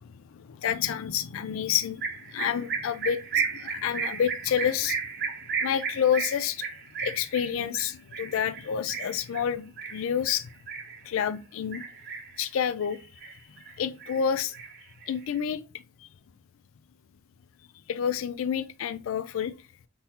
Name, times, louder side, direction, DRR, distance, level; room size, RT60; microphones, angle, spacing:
voice 1, 0.3-5.0 5.6-6.7 7.0-10.5 11.0-11.8 12.4-13.0 13.8-14.5 15.1-15.6 16.0-16.1 17.9-19.5, left 8 dB, 70° left, 0.3 m, -29 dB
sound 1, 2.0-11.3 11.7-12.4 12.8-13.7 14.0-15.3, right 6 dB, 50° right, 0.7 m, -34 dB
3.7 x 2.8 x 2.8 m
head